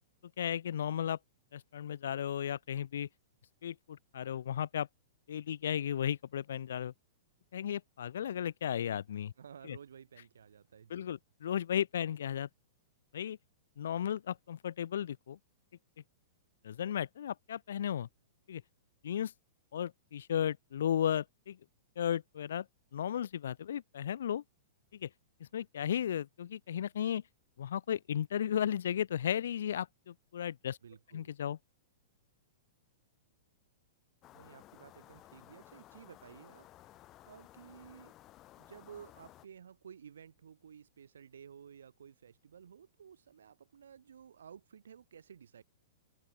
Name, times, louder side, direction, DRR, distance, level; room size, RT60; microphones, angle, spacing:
voice 1, 0.4-1.2 1.5-3.1 3.6-4.9 5.3-6.9 7.5-9.3 9.7-9.8 10.9-12.5 13.1-13.4 13.8-15.4 16.6-18.1 18.5-18.6 19.0-19.3 19.7-21.6 22.0-22.7 22.9-24.4 24.9-25.1 25.4-27.2 27.6-30.8 31.1-31.6, left 9 dB, 75° left, 2.3 m, -35 dB
voice 2, 9.4-11.1 30.8-31.3 34.3-38.1 38.6-45.6, right 7 dB, 85° right, 7.4 m, -54 dB
sound 1, 34.2-39.5, left 15 dB, 30° left, 6.2 m, -57 dB
hypercardioid pair, 130°, 0 cm